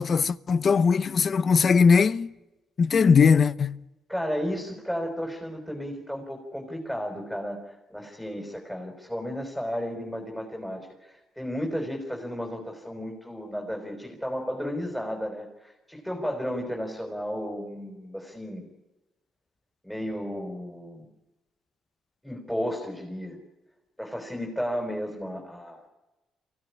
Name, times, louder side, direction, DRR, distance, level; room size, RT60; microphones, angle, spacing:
voice 1, 0.0-2.3 2.8-3.8, left 5 dB, 45° left, 0.8 m, -20 dB
voice 2, 4.1-18.7 19.8-21.1 22.2-23.4 24.0-25.8, equal, 5° left, 5.4 m, -33 dB
24.5 x 16.0 x 9.9 m
cardioid pair, 90°, 0 cm